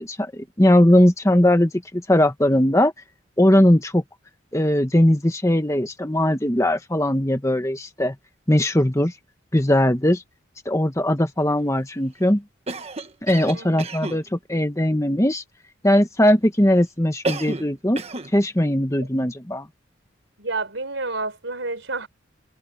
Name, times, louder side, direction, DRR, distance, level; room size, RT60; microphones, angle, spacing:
voice 1, 0.0-2.9 3.4-4.0 4.5-8.1 8.5-9.1 9.5-10.2 10.6-12.4 13.2-15.4 15.8-18.0 18.3-19.7, left 1 dB, 15° left, 1.3 m, -19 dB
Cough, 12.7-14.2 17.2-17.7 18.0-18.3, right 2 dB, 30° right, 1.4 m, -30 dB
voice 2, 13.5-13.8 20.4-22.1, right 3 dB, 65° right, 4.6 m, -29 dB
head